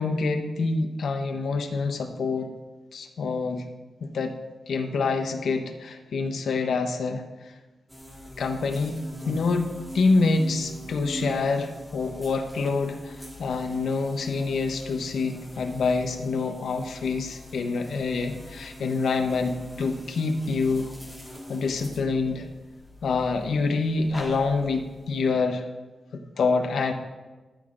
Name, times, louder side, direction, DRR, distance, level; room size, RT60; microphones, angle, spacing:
voice 1, 0.0-2.5 2.9-3.6 4.0-4.3 4.7-7.2 8.4-9.7 9.9-20.9 21.5-22.5 23.0-25.6 26.1-26.9, left 4 dB, 80° left, 5 dB, 0.8 m, -26 dB
sound 1, 7.9-25.3, equal, ahead, 1.7 m, -42 dB
13.0 x 7.8 x 2.5 m, 1.2 s
wide cardioid pair, 170°, 0 cm